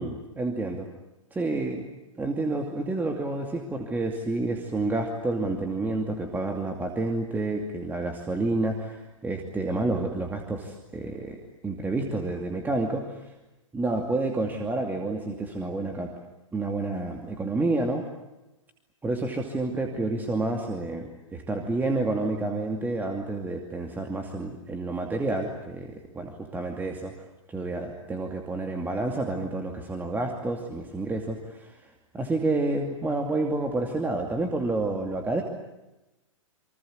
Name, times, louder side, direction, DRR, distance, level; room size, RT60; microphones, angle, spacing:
voice 1, 0.4-0.9 1.3-1.8 2.2-13.3 13.7-16.1 16.5-18.0 19.0-27.1 27.5-35.4, right 2 dB, 10° right, 3 dB, 2.5 m, -29 dB
28.5 x 24.5 x 8.0 m, 1.0 s
figure-of-eight pair, 110°, 17 cm